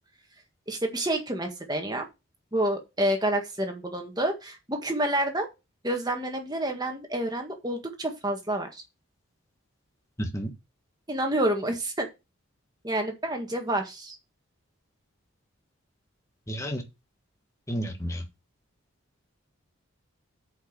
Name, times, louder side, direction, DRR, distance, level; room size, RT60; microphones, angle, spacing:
voice 1, 0.7-2.0 2.5-5.5 5.8-8.8 11.1-12.1 12.8-14.2, right 1 dB, 20° right, 1.7 m, -28 dB
voice 2, 10.2-10.5 16.5-16.8 17.7-18.2, equal, 15° left, 1.4 m, -31 dB
7.9 x 5.4 x 6.7 m
head